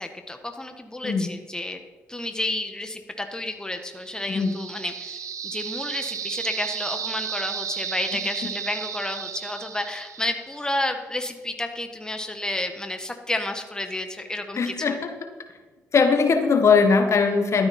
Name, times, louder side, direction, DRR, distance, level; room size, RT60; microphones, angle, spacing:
voice 1, 0.0-1.8 2.1-15.0, left 1 dB, 10° left, 6 dB, 1.5 m, -31 dB
sound 1, 3.8-10.7, right 8 dB, 60° right, 0.8 m, -34 dB
voice 2, 14.6-15.1 15.9-17.7, left 5 dB, 50° left, 6 dB, 1.5 m, -20 dB
12.5 x 9.7 x 4.4 m, 1.2 s
hypercardioid pair, 50°, 6 cm